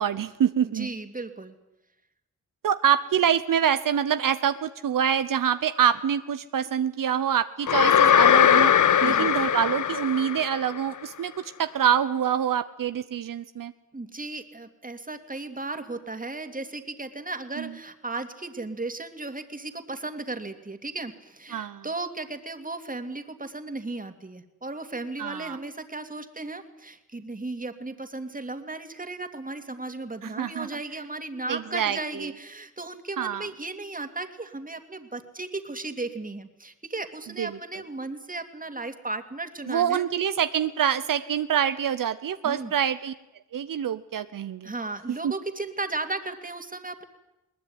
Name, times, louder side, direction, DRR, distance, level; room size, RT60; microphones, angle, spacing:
voice 1, 0.0-0.9 2.6-8.7 9.0-13.7 17.6-17.7 21.5-21.8 25.2-25.6 30.2-30.7 31.5-32.0 33.2-33.5 37.4-37.5 39.6-43.1 43.5-44.7 45.2-45.3, right 9 dB, 80° right, 11 dB, 0.8 m, -25 dB
voice 2, 0.6-1.6 9.0-9.3 13.9-40.1 42.4-42.7 44.6-47.1, right 2 dB, 25° right, 7 dB, 2.5 m, -35 dB
sound 1, 7.7-10.8, left 8 dB, 65° left, 0.8 m, -20 dB
21.0 x 19.5 x 9.6 m, 0.93 s
cardioid pair, 65°, 32 cm